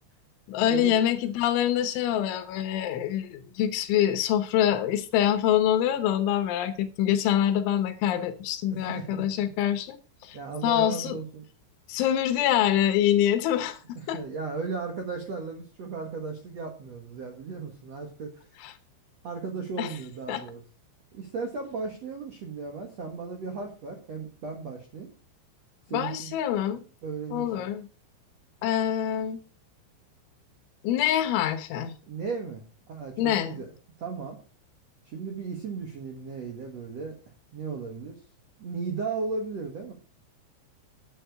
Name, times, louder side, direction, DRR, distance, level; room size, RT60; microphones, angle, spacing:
voice 1, 0.5-10.0 10.2-10.4 10.6-11.2 11.9-14.2 18.6-18.7 19.8-19.9 20.3-20.4 25.9-26.8 27.3-27.9 28.6-29.4 30.8-31.9 33.2-33.6, left 11 dB, 80° left, 3.4 m, -25 dB
voice 2, 8.7-9.5 10.3-11.4 13.9-18.5 19.2-20.6 21.1-25.1 25.9-26.3 27.0-27.7 32.1-33.7 34.0-34.4 35.0-37.2 37.5-38.1 38.6-39.9, right 4 dB, 75° right, 1.5 m, -35 dB
10.0 x 8.8 x 4.6 m
omnidirectional pair, 5.4 m